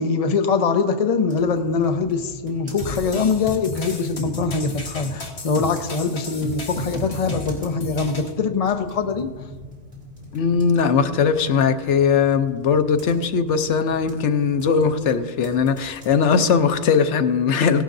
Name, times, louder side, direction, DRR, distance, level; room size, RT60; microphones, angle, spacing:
voice 1, 0.0-9.3, left 5 dB, 40° left, 7 dB, 0.7 m, -23 dB
sound 1, 1.3-16.8, left 1 dB, 40° right, 3.7 m, -43 dB
sound 2, 2.8-8.3, left 1 dB, 65° left, 1.6 m, -32 dB
voice 2, 10.3-17.8, left 6 dB, 80° left, 9 dB, 1.0 m, -19 dB
17.5 x 12.0 x 2.6 m, 1.4 s
omnidirectional pair, 1.2 m